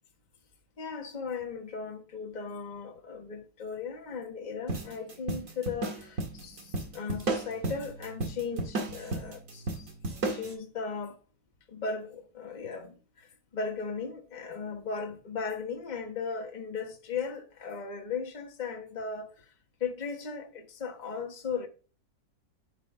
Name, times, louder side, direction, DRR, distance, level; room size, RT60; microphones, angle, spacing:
voice 1, 0.8-9.9 10.3-11.2 11.7-19.5 19.8-21.7, left 5 dB, 25° left, 1.3 m, -37 dB
sound 1, 4.7-10.5, right 2 dB, 50° right, 2.1 m, -34 dB
11.0 x 5.1 x 3.7 m
omnidirectional pair, 1.9 m